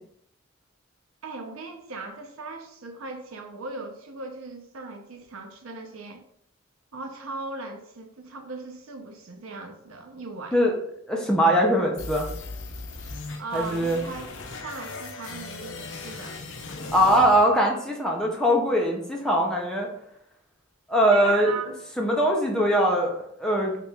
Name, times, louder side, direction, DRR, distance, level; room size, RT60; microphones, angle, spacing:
voice 1, 1.2-6.2 6.9-10.6 13.4-14.3 14.6-16.4 21.1-21.7, right 3 dB, 80° right, 4 dB, 0.6 m, -38 dB
voice 2, 11.1-12.3 13.5-14.0 16.9-19.9 20.9-21.5 22.0-23.8, equal, 5° left, -1 dB, 0.5 m, -21 dB
sound 1, 12.0-18.0, left 3 dB, 60° left, 0.5 m, -38 dB
2.9 x 2.9 x 3.4 m, 0.72 s
head